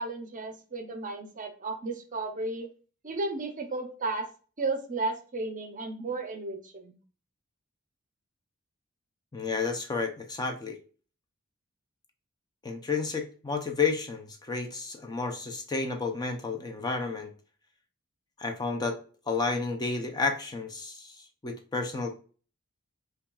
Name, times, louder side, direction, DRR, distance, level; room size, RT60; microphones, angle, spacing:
voice 1, 0.0-2.7 3.0-4.3 4.6-6.9, right 3 dB, 40° right, 6 dB, 0.7 m, -33 dB
voice 2, 9.3-10.8 12.6-17.3 18.4-19.0 19.3-22.2, left 4 dB, 20° left, 3 dB, 0.5 m, -31 dB
5.6 x 2.3 x 2.3 m, 0.39 s
head